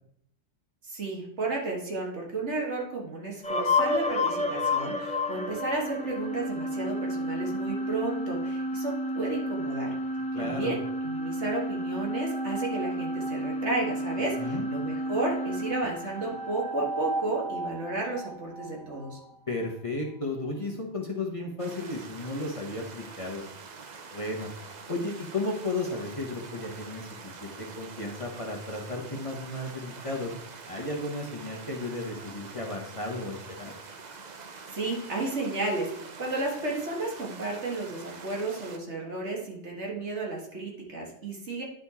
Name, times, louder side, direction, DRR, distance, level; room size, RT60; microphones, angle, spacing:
voice 1, 0.8-9.9 10.4-19.2 34.7-41.6, right 2 dB, 65° right, -1 dB, 2.0 m, -33 dB
sound 1, 3.4-19.3, left 1 dB, 10° left, 0.4 m, -31 dB
voice 2, 10.3-10.7 14.4-14.7 19.5-23.4 24.1-24.5 24.9-30.3 30.7-33.7, left 2 dB, 30° left, -1 dB, 1.1 m, -34 dB
sound 2, 21.6-38.8, right 4 dB, 45° right, 0.7 m, -45 dB
10.0 x 4.3 x 4.2 m, 0.72 s
omnidirectional pair, 1.3 m